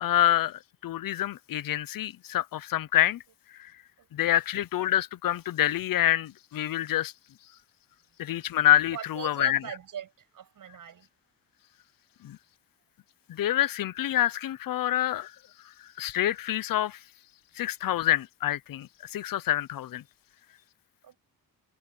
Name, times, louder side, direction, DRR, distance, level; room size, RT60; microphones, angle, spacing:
voice 1, 0.0-3.2 4.1-7.1 8.2-9.6 12.2-12.4 13.3-15.3 16.0-17.0 17.6-20.0, left 12 dB, 65° left, 0.7 m, -27 dB
voice 2, 4.0-4.4 8.9-11.1 21.0-21.2, right 9 dB, 60° right, 6.9 m, -41 dB
wide cardioid pair, 155°, 36 cm